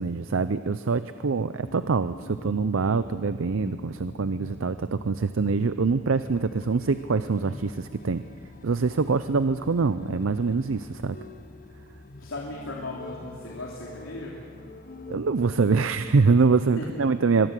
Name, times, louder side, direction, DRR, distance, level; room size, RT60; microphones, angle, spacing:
voice 1, 0.0-8.2 8.6-11.2 15.1-17.5, right 4 dB, 75° right, 12 dB, 0.6 m, -24 dB
sound 1, 1.6-16.3, left 2 dB, 45° left, 1.3 m, -45 dB
voice 2, 8.9-9.4 12.2-14.4 16.8-17.0, left 2 dB, 85° left, -2 dB, 3.1 m, -37 dB
23.5 x 23.0 x 7.6 m, 2.1 s
head